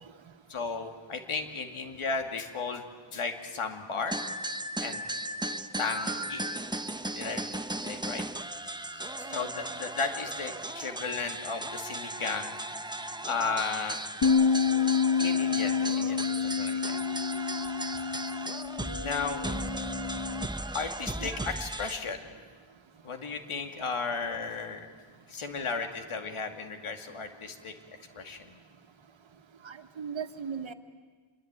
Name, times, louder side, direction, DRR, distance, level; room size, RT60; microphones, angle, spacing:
voice 1, 0.5-2.8 3.1-4.2 4.8-5.0 5.8-6.5 7.1-7.4 7.8-8.2 8.8-12.5 13.2-14.0 15.2-17.0 19.0-19.4 20.7-22.2 23.0-24.9 25.3-27.7 28.1-28.6, left 4 dB, 80° left, 5 dB, 2.6 m, -34 dB
sound 1, 4.1-22.0, right 1 dB, 10° right, 1.0 m, -36 dB
Bass guitar, 14.2-20.5, left 6 dB, 55° left, 1.4 m, -28 dB
voice 2, 18.9-19.9 21.2-21.5 29.6-30.7, right 6 dB, 65° right, 7 dB, 1.7 m, -40 dB
26.0 x 22.5 x 9.0 m, 1.5 s
cardioid pair, 75°, 49 cm